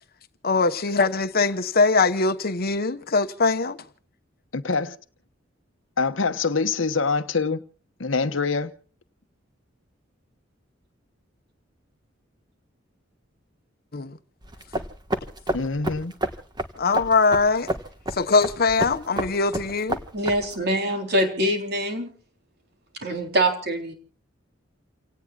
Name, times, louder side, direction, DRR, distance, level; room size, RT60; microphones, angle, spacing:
voice 1, 0.4-3.8 13.9-14.2 16.8-17.7 18.1-20.0, left 4 dB, 50° left, 1.1 m, -22 dB
voice 2, 4.5-5.0 6.0-7.6 8.0-8.7 15.5-16.1, left 4 dB, 85° left, 1.1 m, -24 dB
sound 1, 14.4-20.6, right 1 dB, 20° right, 1.5 m, -31 dB
voice 3, 20.1-22.1 23.0-23.9, right 1 dB, 55° right, 3.9 m, -24 dB
29.5 x 18.0 x 2.4 m
head